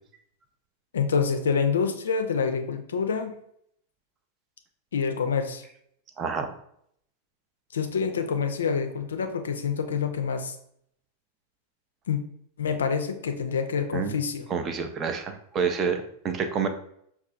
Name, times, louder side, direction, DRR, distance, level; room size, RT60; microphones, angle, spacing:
voice 1, 0.9-3.3 4.9-5.6 7.7-10.6 12.1-12.2 12.6-14.5, left 6 dB, 65° left, 7 dB, 0.4 m, -27 dB
voice 2, 6.2-6.5 13.9-14.1 14.5-16.7, right 6 dB, 30° right, 7 dB, 0.4 m, -28 dB
5.4 x 2.3 x 2.4 m, 0.69 s
figure-of-eight pair, 90°, 0 cm